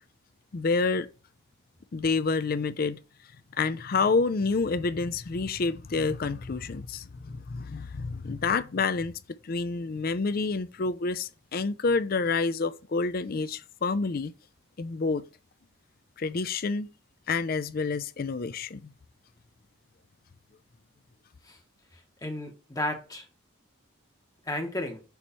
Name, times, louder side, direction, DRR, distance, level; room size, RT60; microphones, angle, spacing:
voice 1, 0.5-1.1 1.9-3.0 3.6-9.1 9.4-14.3 14.8-15.2 16.2-16.9 17.3-18.9, left 4 dB, 45° left, 0.5 m, -28 dB
voice 2, 21.9-23.3 24.4-25.0, left 1 dB, 20° left, 1.0 m, -33 dB
6.9 x 3.1 x 5.5 m
head